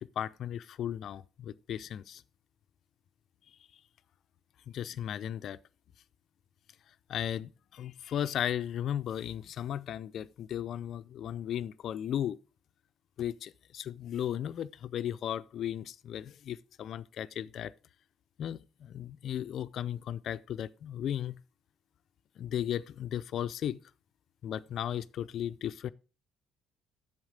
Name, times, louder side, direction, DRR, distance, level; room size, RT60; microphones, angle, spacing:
voice 1, 0.0-2.2 4.7-5.6 7.1-12.4 13.2-17.7 18.4-21.4 22.4-23.8 24.4-25.9, left 10 dB, 60° left, 0.4 m, -36 dB
8.0 x 7.2 x 5.0 m
hypercardioid pair, 55°, 0 cm